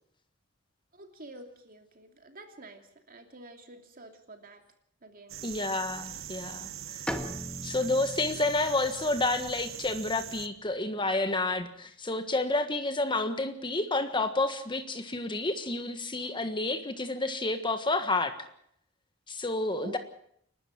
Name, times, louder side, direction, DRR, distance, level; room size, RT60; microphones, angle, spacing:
voice 1, 0.9-4.6 5.0-5.4 19.8-20.0, right 1 dB, 45° right, 4 dB, 2.8 m, -48 dB
sound 1, 5.3-10.5, right 10 dB, 90° right, 1.0 m, -42 dB
voice 2, 5.4-7.0 7.6-18.3 19.3-20.0, left 2 dB, 25° left, 8 dB, 1.5 m, -30 dB
Bowed string instrument, 7.1-10.7, equal, 5° left, 1.8 m, -41 dB
29.5 x 12.5 x 7.5 m, 0.69 s
head